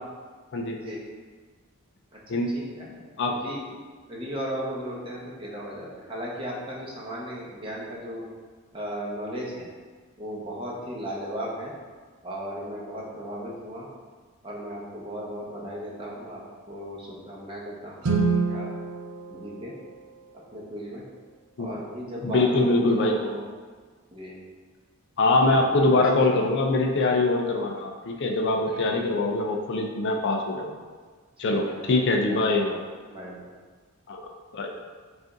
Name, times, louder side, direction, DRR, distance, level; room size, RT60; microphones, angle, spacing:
voice 1, 2.5-3.6 4.1-8.3 8.7-9.7 10.2-11.7 12.2-13.9 14.4-16.4 16.7-18.1 18.5-18.7 19.3-19.7 20.5-21.0 21.6-23.4 24.1-24.4 25.3-25.8 26.2-26.4 28.6-29.1 31.4-32.0 32.3-32.8 33.1-33.5, equal, 25° right, -4 dB, 0.8 m, -36 dB
Guitar, 18.0-20.6, right 4 dB, 85° right, 0.6 m, -28 dB
voice 2, 22.2-23.2 25.2-30.8 31.4-32.7 34.1-34.7, left 2 dB, 55° left, 2 dB, 0.4 m, -23 dB
5.0 x 2.5 x 3.8 m, 1.5 s
head